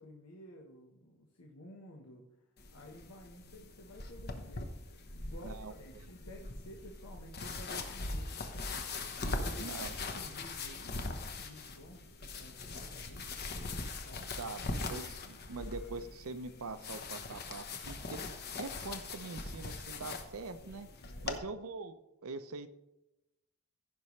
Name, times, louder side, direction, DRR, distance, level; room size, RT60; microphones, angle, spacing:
voice 1, 0.0-2.2 2.7-8.9 9.3-9.8 10.1-13.3 14.0-14.3 21.0-21.4, equal, 80° left, 0 dB, 1.2 m, -53 dB
sound 1, 2.6-21.4, left 3 dB, 45° left, 0.9 m, -41 dB
voice 2, 5.4-6.1 9.6-9.9 14.4-20.9 21.2-22.7, right 3 dB, 80° right, 12 dB, 0.6 m, -44 dB
15.5 x 5.5 x 3.1 m, 0.94 s
head